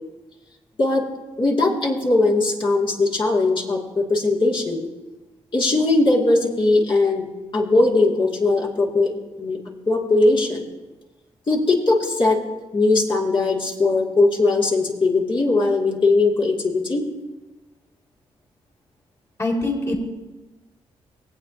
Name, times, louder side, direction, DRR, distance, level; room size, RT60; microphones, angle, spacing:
voice 1, 1.4-4.9 5.5-7.3 7.5-9.1 9.4-9.6 9.9-10.6 11.5-12.4 12.7-17.0, left 2 dB, 45° left, -4 dB, 2.6 m, -19 dB
voice 2, 19.4-20.0, left 2 dB, 25° left, -1 dB, 2.9 m, -23 dB
20.0 x 8.5 x 2.9 m, 1.2 s
cardioid pair, 60°, 12 cm